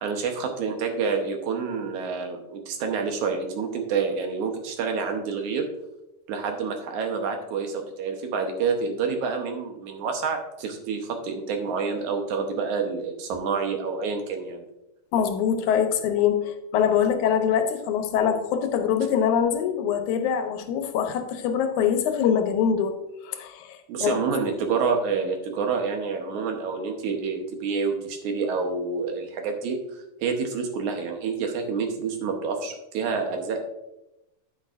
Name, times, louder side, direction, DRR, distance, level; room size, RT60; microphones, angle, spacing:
voice 1, 0.0-5.7 6.3-14.6 23.9-33.6, right 5 dB, 75° right, 4 dB, 2.3 m, -28 dB
voice 2, 15.1-23.0 23.2-24.1 24.5-24.6, left 8 dB, 75° left, 6 dB, 2.2 m, -24 dB
9.9 x 8.7 x 2.5 m, 0.90 s
omnidirectional pair, 3.6 m